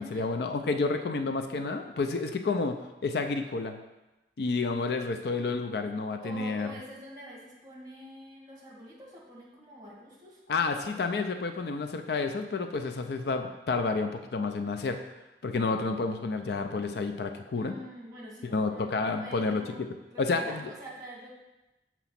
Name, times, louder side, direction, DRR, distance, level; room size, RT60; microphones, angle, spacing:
voice 1, 0.0-2.8 3.0-3.8 4.4-6.7 10.5-15.0 15.4-17.7 18.5-19.6 20.2-20.6, left 3 dB, 65° left, 7 dB, 0.4 m, -30 dB
voice 2, 6.2-10.9 17.5-21.3, equal, 20° right, -4 dB, 1.5 m, -46 dB
6.9 x 3.0 x 5.7 m, 1.0 s
head